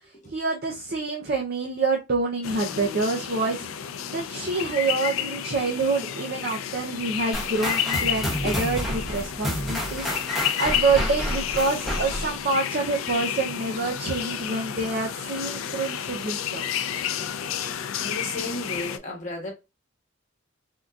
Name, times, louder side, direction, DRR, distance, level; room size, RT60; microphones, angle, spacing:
voice 1, 0.3-3.7 4.1-16.6, right 3 dB, 45° right, 0.6 m, -27 dB
sound 1, 2.4-19.0, left 9 dB, 75° left, 0.4 m, -31 dB
sound 2, 7.3-12.4, equal, ahead, 0.9 m, -29 dB
Explosion, 8.7-10.4, equal, 55° left, 0.8 m, -41 dB
voice 2, 17.5-19.5, left 1 dB, 35° left, 1.2 m, -34 dB
3.6 x 2.6 x 2.3 m
head